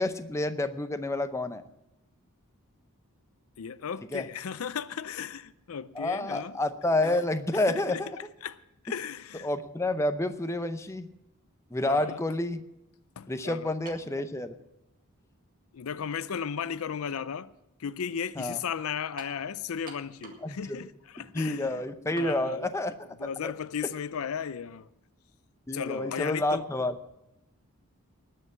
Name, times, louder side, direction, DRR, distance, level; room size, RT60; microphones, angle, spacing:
voice 1, 0.0-1.6 4.1-4.2 5.9-8.1 9.4-11.1 11.7-12.6 13.3-14.6 18.4-18.6 20.4-20.9 21.2-23.5 25.7-27.0, left 2 dB, 15° left, 0.6 m, -29 dB
voice 2, 3.6-6.5 7.7-8.6 8.8-9.5 11.8-12.2 13.2-13.7 15.7-17.5 17.8-21.8 22.2-22.7 23.2-24.9 25.7-26.6, left 7 dB, 75° left, 0.5 m, -35 dB
sound 1, 13.9-14.1 15.0-15.1 19.2-19.4 19.9-20.5 20.8-20.9 22.2-22.4, right 3 dB, 40° right, 1.9 m, -46 dB
19.5 x 6.7 x 7.4 m
head